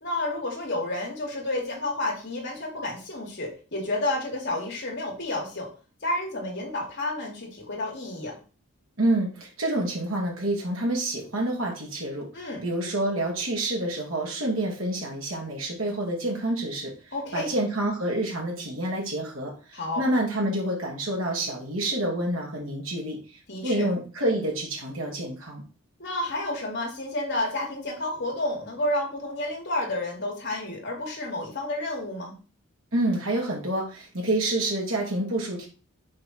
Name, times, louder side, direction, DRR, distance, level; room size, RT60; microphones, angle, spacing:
voice 1, 0.0-5.7 6.0-8.4 12.3-12.6 17.1-17.5 19.7-20.0 23.5-23.9 26.0-32.3, left 1 dB, 55° left, -1 dB, 2.8 m, -30 dB
voice 2, 9.0-16.9 17.3-23.2 23.6-25.6 32.9-35.7, right 1 dB, 65° right, -3 dB, 2.6 m, -28 dB
6.2 x 4.7 x 4.5 m, 0.36 s
head